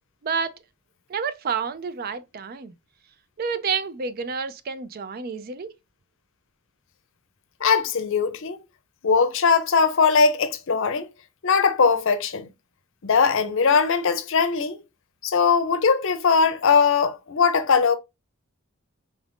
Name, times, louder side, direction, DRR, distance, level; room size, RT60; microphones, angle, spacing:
voice 1, 0.2-0.5 1.1-2.7 3.4-5.7, right 5 dB, 40° right, 0.4 m, -29 dB
voice 2, 7.6-8.6 9.0-11.1 11.4-12.5 13.0-14.8 15.2-18.0, left 5 dB, 60° left, 0.6 m, -20 dB
3.9 x 2.5 x 3.3 m
head